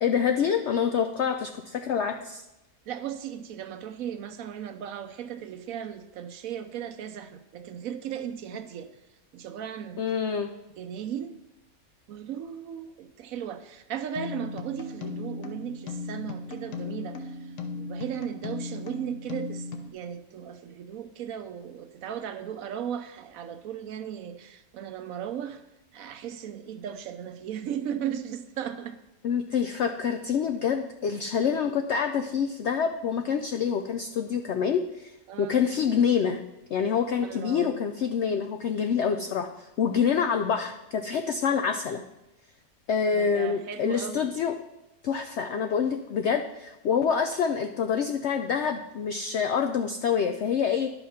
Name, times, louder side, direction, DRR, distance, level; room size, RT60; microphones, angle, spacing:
voice 1, 0.0-2.4 10.0-10.5 29.2-36.4 36.7-42.0 42.9-44.5 45.0-50.9, left 7 dB, 75° left, 6 dB, 0.6 m, -26 dB
voice 2, 2.9-8.9 9.3-10.1 10.8-11.4 12.1-25.6 25.9-28.9 35.3-35.6 37.2-37.8 43.1-44.3, right 9 dB, 65° right, 10 dB, 1.0 m, -36 dB
sound 1, 14.2-19.9, left 3 dB, 55° left, 1.1 m, -37 dB
10.5 x 5.6 x 5.7 m, 0.93 s
omnidirectional pair, 1.7 m